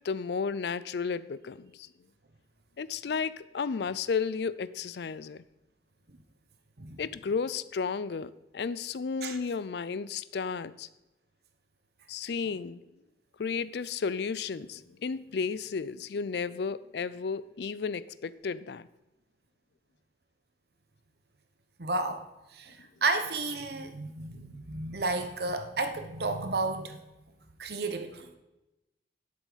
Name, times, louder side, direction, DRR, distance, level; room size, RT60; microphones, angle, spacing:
voice 1, 0.0-1.9 2.8-5.4 7.0-10.9 12.1-12.8 13.4-18.9 24.2-24.4, left 5 dB, 60° left, 17 dB, 0.4 m, -33 dB
voice 2, 21.8-22.2 22.5-27.0 27.6-28.3, right 3 dB, 60° right, 8 dB, 1.0 m, -32 dB
12.0 x 7.6 x 4.1 m, 0.99 s
head